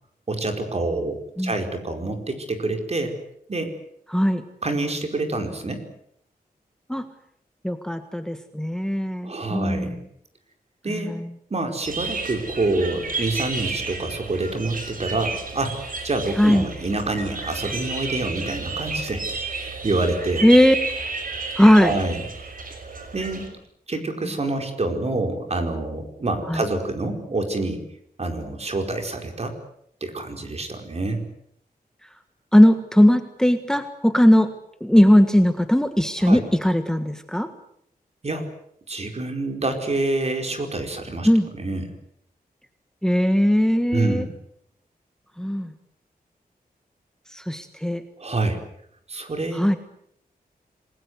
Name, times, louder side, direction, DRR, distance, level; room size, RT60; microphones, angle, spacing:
voice 1, 0.3-3.2 3.5-3.7 4.6-5.8 9.2-10.0 10.8-11.2 11.5-15.8 16.0-20.4 21.8-22.2 23.1-23.5 23.9-27.8 28.2-29.6 30.0-31.2 36.2-36.4 38.2-38.5 38.9-41.3 41.5-41.8 43.9-44.3 48.2-48.6 49.1-49.8, right 2 dB, 40° right, 5 dB, 4.8 m, -27 dB
voice 2, 4.1-4.4 6.9-7.0 7.6-10.0 10.9-11.3 16.4-16.7 20.4-20.7 21.6-22.0 26.5-26.6 32.5-34.5 34.8-37.5 41.2-41.5 43.0-44.3 45.4-45.7 47.3-48.0 49.5-49.8, equal, 5° left, 9 dB, 1.5 m, -18 dB
sound 1, 11.8-23.5, right 4 dB, 60° right, 6.0 m, -32 dB
27.5 x 21.0 x 8.1 m, 0.70 s
wide cardioid pair, 120°, 16 cm